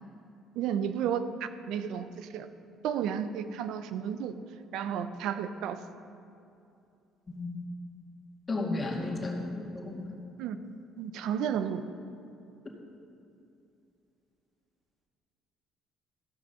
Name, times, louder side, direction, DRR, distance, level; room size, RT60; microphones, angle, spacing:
voice 1, 0.6-2.5 2.8-4.3 4.7-5.8 10.4-10.6 11.0-11.8, right 8 dB, 75° right, 11 dB, 0.6 m, -32 dB
voice 2, 7.3-7.6 8.5-10.1, left 2 dB, 30° left, -1 dB, 2.2 m, -33 dB
14.0 x 6.1 x 5.7 m, 2.6 s
supercardioid pair, 75°, 0 cm